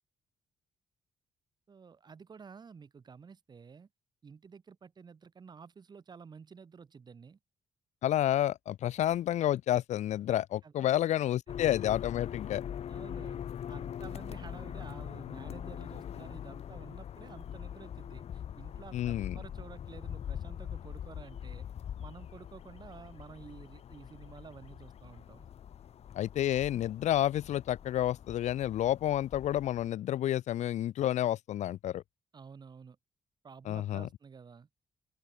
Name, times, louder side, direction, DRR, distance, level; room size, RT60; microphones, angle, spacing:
voice 1, 1.7-3.9 4.2-7.4 10.6-11.0 12.9-13.4 13.7-21.6 22.0-25.5 32.3-33.0 33.4-34.7, right 5 dB, 35° right, 4.7 m, -51 dB
voice 2, 8.0-12.6 18.9-19.4 26.1-32.0 33.7-34.1, left 12 dB, 75° left, 0.6 m, -30 dB
sound 1, 11.5-29.9, left 9 dB, 60° left, 1.8 m, -43 dB
open air
cardioid pair, 140°, 12 cm